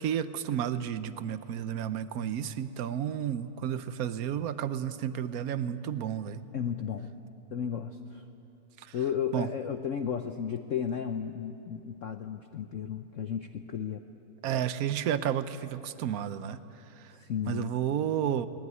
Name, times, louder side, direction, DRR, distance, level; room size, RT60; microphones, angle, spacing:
voice 1, 0.0-6.4 9.3-9.5 14.4-16.6 17.5-18.5, right 9 dB, 65° right, 13 dB, 0.9 m, -31 dB
voice 2, 6.5-7.1 7.5-8.2 8.9-14.0 17.1-17.7, left 8 dB, 75° left, 7 dB, 0.7 m, -34 dB
21.5 x 19.0 x 9.5 m, 2.8 s
omnidirectional pair, 2.3 m